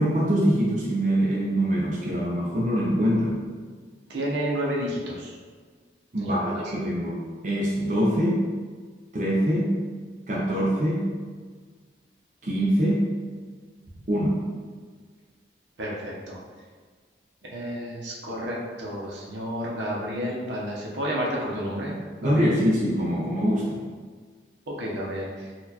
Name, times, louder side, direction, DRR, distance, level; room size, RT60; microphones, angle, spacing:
voice 1, 0.0-3.4 6.1-8.4 9.1-9.8 10.3-11.1 12.4-13.1 14.1-14.4 22.2-23.8, equal, 45° right, -5 dB, 0.5 m, -24 dB
voice 2, 4.1-5.4 6.2-6.6 15.8-16.4 17.4-22.5 24.7-25.5, equal, 85° right, -3 dB, 0.7 m, -31 dB
4.0 x 2.3 x 2.8 m, 1.6 s
head